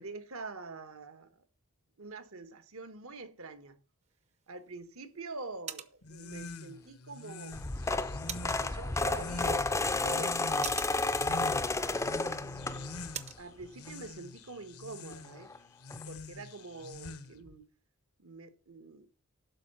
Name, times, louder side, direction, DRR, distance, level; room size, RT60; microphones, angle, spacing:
voice 1, 0.0-1.4 2.0-3.8 4.5-7.6 7.9-9.7 10.0-10.5 11.9-13.0 13.4-15.5 16.1-17.7 18.2-19.1, right 3 dB, 75° right, 1.4 m, -45 dB
sound 1, 4.0-13.5, right 8 dB, 30° right, 0.7 m, -48 dB
sound 2, 6.0-17.5, left 3 dB, 85° left, 1.2 m, -45 dB
sound 3, 7.5-13.2 13.6-13.9 15.1-15.2 15.4-15.6 15.9-16.0, left 3 dB, 15° left, 0.5 m, -32 dB
12.0 x 4.9 x 6.8 m
head